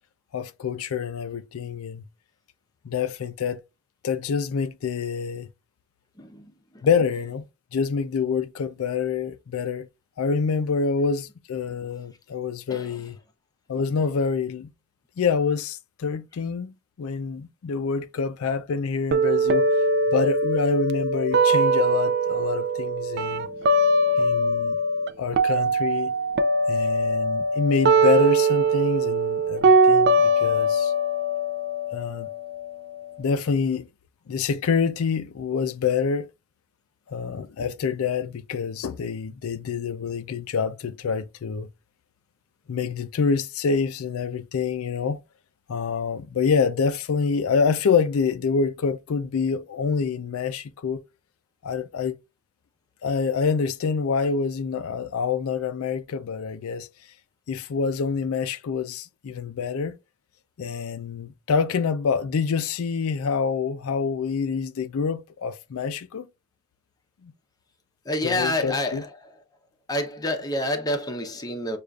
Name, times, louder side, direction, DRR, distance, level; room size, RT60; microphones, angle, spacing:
voice 1, 0.3-2.0 2.8-3.6 4.0-5.5 6.8-7.5 7.7-9.9 10.2-13.2 13.7-14.7 15.2-19.7 20.1-23.5 24.2-24.8 25.2-26.1 26.7-30.9 31.9-32.3 33.2-33.9 34.3-36.3 37.1-41.7 42.7-45.2 45.7-51.0 51.6-52.1 53.0-56.9 57.5-60.0 60.6-66.3 67.2-67.3 68.2-69.0, left 5 dB, 85° left, 0.4 m, -26 dB
voice 2, 6.2-6.5 12.7-13.0 68.0-69.4 69.9-71.8, left 1 dB, 20° left, 0.6 m, -28 dB
sound 1, 19.1-25.1 25.3-33.1, right 2 dB, 50° right, 0.4 m, -22 dB
6.4 x 2.4 x 2.3 m
head